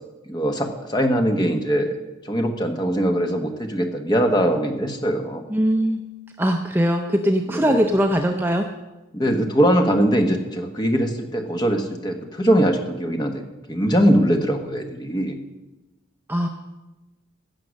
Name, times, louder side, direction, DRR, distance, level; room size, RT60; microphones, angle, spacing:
voice 1, 0.3-2.0 2.2-5.4 7.5-7.8 9.1-13.4 13.7-15.4, equal, 20° left, 4 dB, 1.2 m, -21 dB
voice 2, 5.5-6.0 6.4-8.7 16.3-16.5, equal, 10° right, 4 dB, 0.5 m, -21 dB
16.0 x 6.6 x 6.4 m, 1.1 s
head